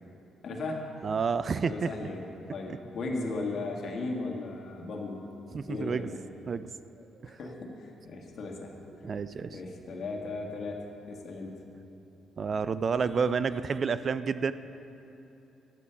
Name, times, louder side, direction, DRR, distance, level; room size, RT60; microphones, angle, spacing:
voice 1, 0.4-0.9 1.6-5.2 5.7-6.2 7.4-8.7 9.5-11.6, left 3 dB, 55° left, 0 dB, 1.6 m, -36 dB
voice 2, 1.0-1.9 2.7-2.8 4.8-4.9 5.5-6.1 6.5-6.7 7.2-7.4 9.0-9.6 12.4-14.5, right 5 dB, 45° right, 14 dB, 0.3 m, -30 dB
11.0 x 8.3 x 5.6 m, 2.9 s
cardioid pair, 90°, 0 cm